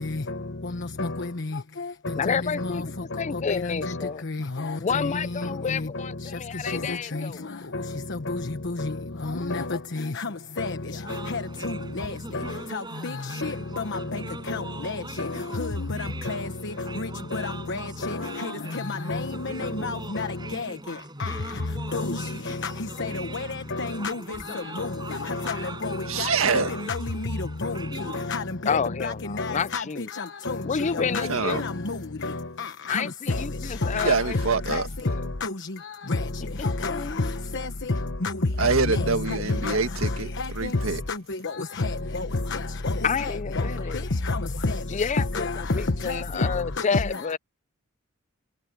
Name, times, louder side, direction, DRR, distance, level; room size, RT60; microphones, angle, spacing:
voice 1, 2.2-2.8 3.2-4.2 4.8-7.5 28.7-30.1 30.6-31.7 32.9-34.4 34.7-35.2 36.8-37.4 43.0-44.1 44.9-47.4, left 6 dB, 35° left, 0.4 m, -29 dB
sound 1, 11.0-28.3, right 2 dB, 20° right, 6.6 m, -41 dB
voice 2, 11.3-11.7 13.4-13.5 14.5-14.6 15.6-15.7 16.3-16.4 17.3-17.4 17.7-18.2 19.1-19.2 19.8-20.3 21.9-22.2 23.8-24.1 24.8-24.9 25.5-25.6 26.2-26.3 26.9-27.0 27.6-27.7 28.3-28.4 29.0-29.1 29.4-29.8 30.5-30.6 31.1-31.2 31.5-31.6 32.9-33.0 34.0-34.1 36.8-36.9 38.2-38.3 39.6-39.7 41.8-41.9 44.3-44.4 45.3-45.4, left 3 dB, 60° left, 1.2 m, -28 dB
voice 3, 26.1-26.7 31.3-31.6 33.9-34.9 38.6-41.0, right 4 dB, 70° right, 1.8 m, -25 dB
head